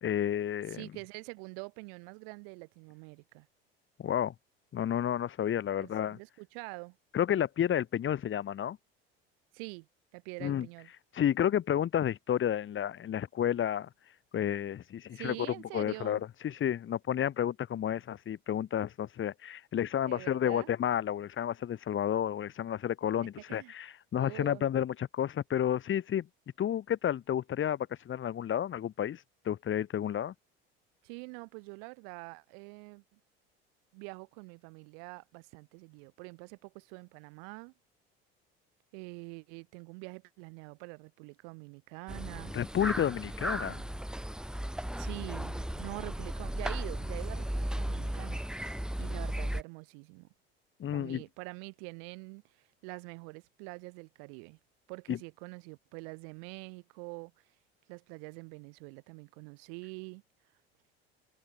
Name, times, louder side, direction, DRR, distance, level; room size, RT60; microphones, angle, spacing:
voice 1, 0.0-0.8 4.0-4.3 4.7-6.2 7.1-8.8 10.4-10.7 11.1-13.9 14.3-15.5 15.7-26.3 26.6-30.3 42.5-43.8 50.8-51.2 55.1-55.2, left 10 dB, 40° left, 1.9 m, -31 dB
voice 2, 0.7-3.5 5.8-7.0 9.5-9.9 10.1-10.9 15.1-16.2 20.0-20.7 23.2-23.7 24.1-24.6 31.0-33.2 33.9-37.7 38.9-42.5 43.6-44.0 45.0-48.7 49.0-50.3 50.9-52.4 52.8-54.6 54.9-57.3 57.9-60.2, right 40 dB or more, 75° right, 5.3 m, -45 dB
sound 1, 42.1-49.6, right 1 dB, ahead, 1.5 m, -36 dB
hypercardioid pair, 80°, 30 cm